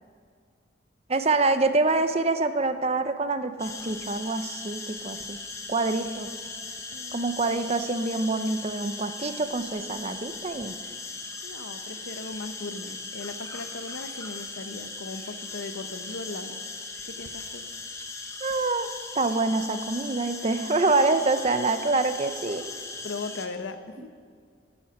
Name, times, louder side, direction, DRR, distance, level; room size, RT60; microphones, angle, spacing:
voice 1, 1.1-5.4 5.7-6.3 7.1-10.8 18.4-22.6, right 3 dB, 35° right, 9 dB, 0.6 m, -26 dB
sound 1, 3.6-23.5, left 3 dB, 15° left, 0.9 m, -39 dB
voice 2, 6.9-7.4 11.4-16.6 17.1-17.6 23.0-24.1, left 3 dB, 80° left, 9 dB, 0.8 m, -38 dB
14.0 x 8.8 x 5.8 m, 2.1 s
head